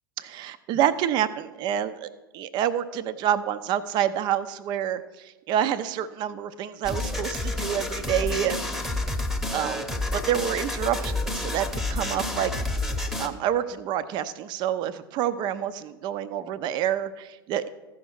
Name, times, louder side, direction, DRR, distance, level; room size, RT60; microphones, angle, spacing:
voice 1, 0.2-2.1 2.3-8.7 9.5-9.8 10.1-12.5 13.2-17.7, right 10 dB, 35° right, 14 dB, 0.6 m, -28 dB
sound 1, 6.8-13.3, left 2 dB, ahead, 0.9 m, -29 dB
14.5 x 5.8 x 4.6 m, 1.1 s
figure-of-eight pair, 90°, 12 cm